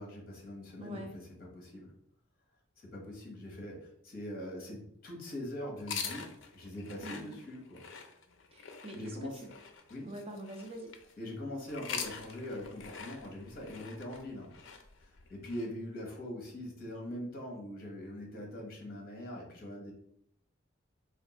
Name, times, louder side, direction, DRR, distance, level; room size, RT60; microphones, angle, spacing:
voice 1, 0.0-1.9 2.8-7.8 8.9-9.4 9.9-10.1 11.2-14.6 15.0-19.9, left 1 dB, 45° left, -1 dB, 1.1 m, -42 dB
voice 2, 0.8-1.2 7.0-7.4 8.5-9.5 10.0-10.9, right 1 dB, 30° right, 3 dB, 0.4 m, -45 dB
sound 1, 5.8-11.1 11.6-15.7, left 6 dB, 70° left, 0.5 m, -44 dB
3.4 x 2.4 x 4.1 m, 0.72 s
head